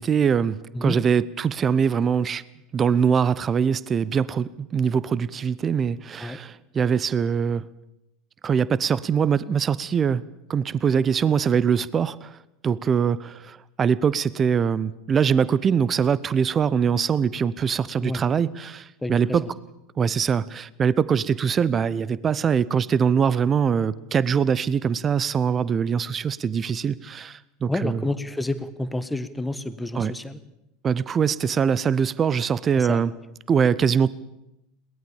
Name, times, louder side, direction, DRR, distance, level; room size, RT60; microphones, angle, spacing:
voice 1, 0.0-2.4 2.7-7.6 8.4-10.2 10.5-12.4 12.6-19.5 20.0-28.1 29.9-30.1 30.8-33.1 33.5-34.1, right 7 dB, 30° right, 21 dB, 0.7 m, -23 dB
voice 2, 19.0-19.5 27.7-30.4 32.7-33.0, left 1 dB, 5° left, 13 dB, 1.5 m, -29 dB
22.0 x 19.0 x 7.1 m, 0.86 s
figure-of-eight pair, 80°, 0 cm